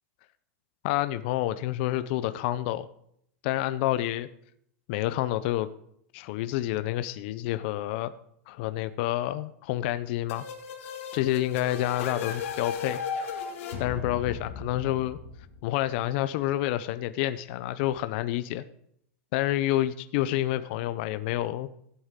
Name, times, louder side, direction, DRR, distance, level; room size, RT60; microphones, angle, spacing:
voice 1, 0.8-2.9 3.4-4.3 4.9-5.7 6.1-8.1 8.5-10.4 11.1-13.0 13.8-15.2 15.6-18.6 19.3-21.7, left 14 dB, 45° left, 12 dB, 0.5 m, -28 dB
sound 1, 10.3-16.0, left 6 dB, 60° left, 2.1 m, -36 dB
16.0 x 8.2 x 3.7 m, 0.71 s
supercardioid pair, 160°, 8 cm